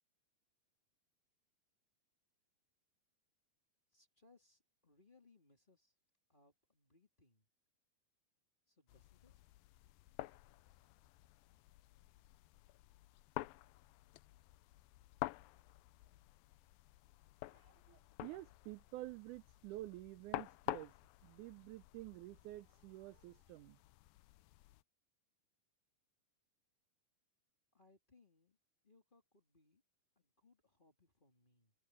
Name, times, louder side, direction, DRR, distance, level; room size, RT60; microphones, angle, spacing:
voice 1, 3.9-5.9 6.3-7.5 8.7-9.3 27.7-28.6 28.8-29.8 30.1-31.7, left 3 dB, 15° left, 2.6 m, -70 dB
sound 1, 8.9-24.8, left 18 dB, 85° left, 2.3 m, -50 dB
voice 2, 17.5-21.0 21.2-23.8, right 17 dB, 80° right, 1.8 m, -50 dB
omnidirectional pair, 4.0 m